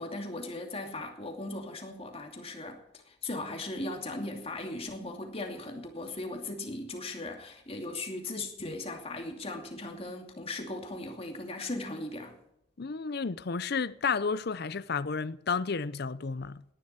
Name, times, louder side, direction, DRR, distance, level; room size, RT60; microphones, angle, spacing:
voice 1, 0.0-12.4, left 2 dB, 30° left, 2.6 m, -38 dB
voice 2, 12.8-16.6, left 5 dB, 55° left, 0.6 m, -32 dB
18.0 x 11.0 x 4.4 m
head